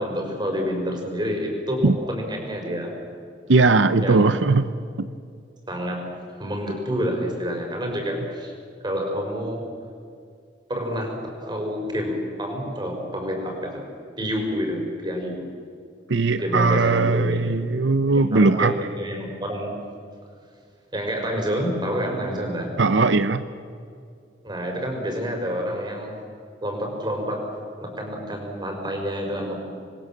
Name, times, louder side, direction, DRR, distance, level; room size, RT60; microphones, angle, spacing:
voice 1, 0.0-2.9 4.0-4.4 5.7-8.5 8.8-9.6 10.7-13.8 14.2-15.5 16.4-17.4 18.1-19.7 20.9-22.8 24.4-26.2 26.6-29.6, equal, 25° right, 2 dB, 5.1 m, -28 dB
voice 2, 3.5-4.7 5.0-5.1 16.1-18.9 22.8-23.4, right 3 dB, 85° right, 12 dB, 0.7 m, -19 dB
27.0 x 21.0 x 7.4 m, 2.3 s
head